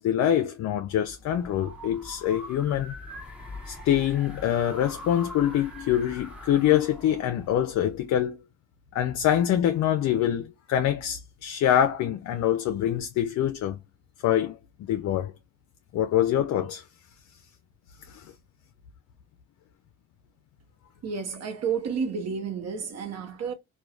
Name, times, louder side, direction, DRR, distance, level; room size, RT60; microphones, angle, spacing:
voice 1, 0.0-2.9 3.7-8.4 8.9-13.8 14.2-15.3 15.9-16.8 18.1-18.3, left 11 dB, 65° left, 0.4 m, -25 dB
sound 1, 1.0-8.2, left 1 dB, 5° right, 1.0 m, -43 dB
voice 2, 21.0-23.5, right 6 dB, 60° right, 0.8 m, -31 dB
3.0 x 2.2 x 2.3 m
cardioid pair, 90°, 30 cm